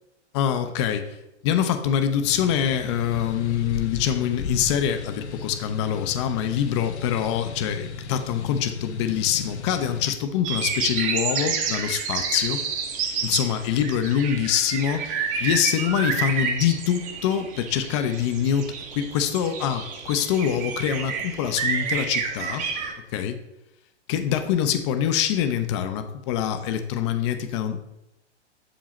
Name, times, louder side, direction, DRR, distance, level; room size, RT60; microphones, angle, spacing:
voice 1, 0.3-1.2 1.4-12.6 13.2-22.7 23.1-23.4 24.1-27.8, left 9 dB, 25° left, 9 dB, 0.4 m, -25 dB
sound 1, 2.2-10.1, left 4 dB, 70° left, 0.7 m, -36 dB
sound 2, 10.4-22.9, right 6 dB, 25° right, 0.7 m, -29 dB
7.0 x 5.0 x 2.9 m, 0.93 s
figure-of-eight pair, 110°, 35 cm